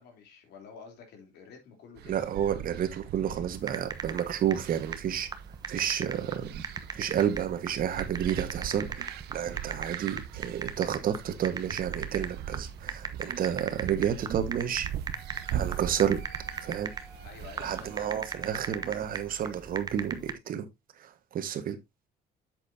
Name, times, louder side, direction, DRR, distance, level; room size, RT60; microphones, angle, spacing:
voice 1, 0.0-2.2 17.2-18.2, left 5 dB, 75° left, 3.4 m, -49 dB
voice 2, 2.0-5.3 5.7-6.6 6.9-14.9 15.5-16.2 16.6-16.9 17.6-20.6 21.0-21.8, right 9 dB, 55° right, 1.5 m, -30 dB
sound 1, 2.0-18.0, right 10 dB, 75° right, 0.8 m, -41 dB
sound 2, 3.6-20.3, right 4 dB, 25° right, 1.0 m, -38 dB
Wind instrument woodwind instrument, 15.1-19.3, right 2 dB, 30° left, 3.3 m, -54 dB
8.3 x 7.8 x 2.7 m
cardioid pair, 110°, 17 cm